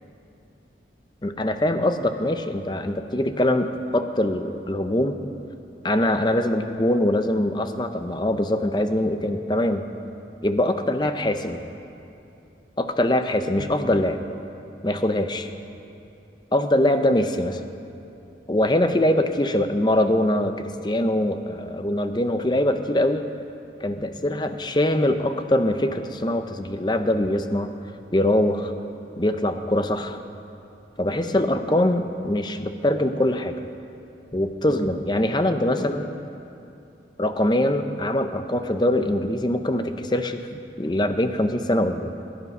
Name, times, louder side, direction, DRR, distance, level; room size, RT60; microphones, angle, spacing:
voice 1, 1.2-5.2 5.8-9.9 10.4-11.6 12.8-14.2 14.8-15.4 16.5-17.6 18.5-23.2 23.8-27.7 28.1-28.7 29.2-30.2 31.0-33.6 34.3-36.2 37.2-42.1, left 1 dB, 25° left, 8 dB, 0.6 m, -23 dB
20.0 x 9.8 x 5.5 m, 2.8 s
head